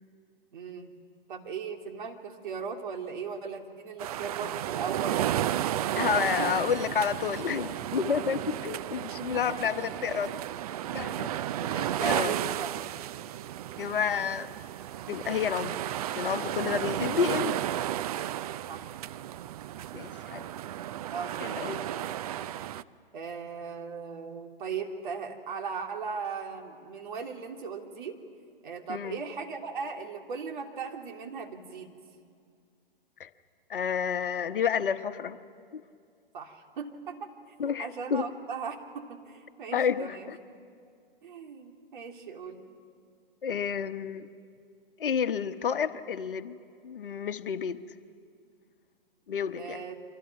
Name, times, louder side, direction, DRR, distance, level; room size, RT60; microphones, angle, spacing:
voice 1, 0.5-1.0 1.3-5.3 6.4-6.6 9.2-9.6 12.0-12.9 18.7-18.9 21.1-21.8 23.1-28.2 28.6-32.0 36.3-40.3 41.2-42.7 49.5-50.0, right 5 dB, 55° right, 2 dB, 2.9 m, -38 dB
sound 1, 4.0-22.8, right 12 dB, 40° right, 0.6 m, -33 dB
voice 2, 6.0-10.3 10.9-11.3 11.6-12.3 13.8-14.5 15.1-15.8 16.1-17.6 19.9-20.5 21.4-21.8 28.9-29.2 33.2-33.3 33.7-35.4 35.7-35.8 37.6-38.3 39.7-40.4 43.4-44.3 45.0-46.6 46.8-47.8 49.3-49.8, left 7 dB, 65° left, 10 dB, 1.1 m, -30 dB
29.5 x 25.0 x 6.0 m, 2.3 s
figure-of-eight pair, 120°, 29 cm